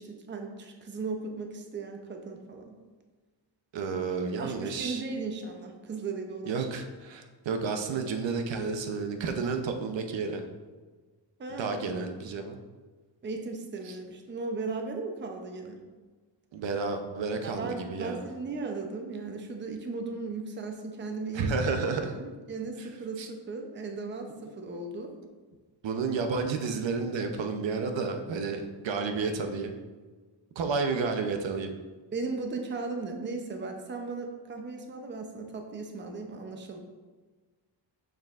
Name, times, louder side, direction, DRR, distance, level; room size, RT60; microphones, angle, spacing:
voice 1, 0.0-2.8 4.4-6.7 11.4-11.8 13.2-15.8 17.4-21.5 21.9-25.1 30.8-30.9 32.1-36.8, right 3 dB, 25° right, 4 dB, 0.6 m, -37 dB
voice 2, 3.7-5.0 6.5-10.4 11.5-12.6 13.9-14.0 16.5-18.2 21.3-22.1 23.2-23.3 25.8-29.7 30.6-31.7, right 4 dB, 75° right, 6 dB, 0.7 m, -31 dB
6.4 x 6.4 x 2.4 m, 1.3 s
wide cardioid pair, 160°, 45 cm